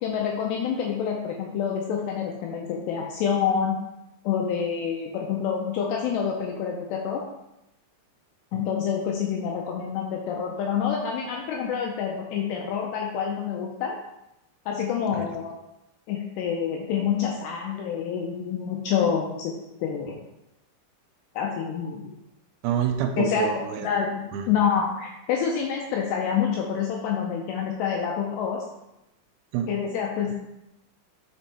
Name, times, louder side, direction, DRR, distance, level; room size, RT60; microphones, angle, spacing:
voice 1, 0.0-3.8 4.2-7.2 8.5-14.0 14.7-15.5 16.1-19.5 19.8-20.2 21.4-22.1 23.2-23.5 23.8-28.6 29.7-30.3, left 7 dB, 90° left, 0 dB, 2.5 m, -27 dB
voice 2, 22.6-23.9 24.3-24.5 29.5-29.7, right 9 dB, 85° right, 5 dB, 2.9 m, -27 dB
6.2 x 5.4 x 4.3 m, 0.88 s
omnidirectional pair, 5.5 m